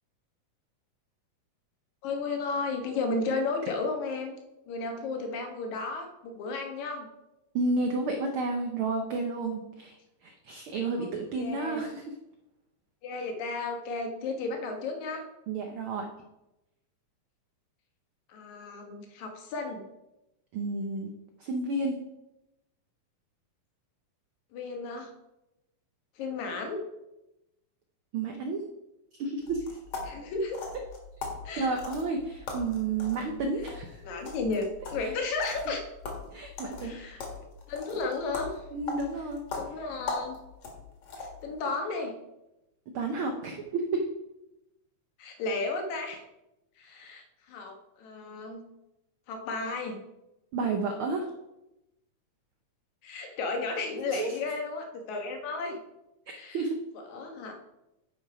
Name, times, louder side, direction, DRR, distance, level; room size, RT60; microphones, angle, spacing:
voice 1, 2.0-4.3 4.7-7.1 11.0-11.1 11.4-11.8 13.0-15.2 18.3-19.8 24.5-25.1 26.2-26.8 30.0-30.6 31.4-31.7 34.0-35.9 36.8-37.2 37.7-38.6 39.6-40.4 41.2-42.2 45.2-46.2 46.8-48.6 49.3-50.0 53.0-55.8 56.3-56.6 57.1-57.5, left 3 dB, 75° left, 4 dB, 2.6 m, -33 dB
voice 2, 7.5-12.0 15.5-16.1 20.5-21.1 21.4-22.0 28.1-28.6 29.2-29.6 31.6-34.0 35.0-35.1 36.3-37.0 38.7-39.4 42.9-44.1 50.5-51.3 54.1-54.4 56.5-56.8, right 3 dB, 85° right, 4 dB, 1.1 m, -31 dB
sound 1, 29.4-41.5, left 3 dB, 55° left, 2.7 m, -41 dB
10.0 x 5.3 x 4.9 m, 0.93 s
omnidirectional pair, 3.4 m